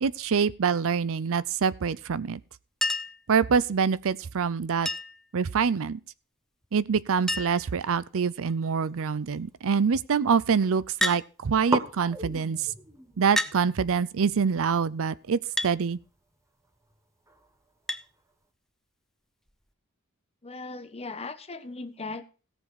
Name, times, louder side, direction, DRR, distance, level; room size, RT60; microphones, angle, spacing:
voice 1, 0.0-2.4 3.3-4.9 5.3-6.0 6.7-12.7 13.2-16.0, right 6 dB, 65° right, 0.5 m, -25 dB
Chink clink, 2.8-3.2 4.8-5.3 6.6-6.7 6.9-7.0 7.3-7.7 8.5-8.9 11.0-11.2 12.3-12.4 13.4-13.6 15.6-15.8 17.9-18.1 19.5-19.6, left 1 dB, ahead, 0.6 m, -29 dB
sound 1, 8.1-9.9 10.2-10.9 11.1-11.2 11.7-18.5, right 2 dB, 15° right, 1.3 m, -39 dB
voice 2, 20.4-22.2, left 3 dB, 25° left, 1.1 m, -38 dB
17.0 x 7.2 x 4.2 m
head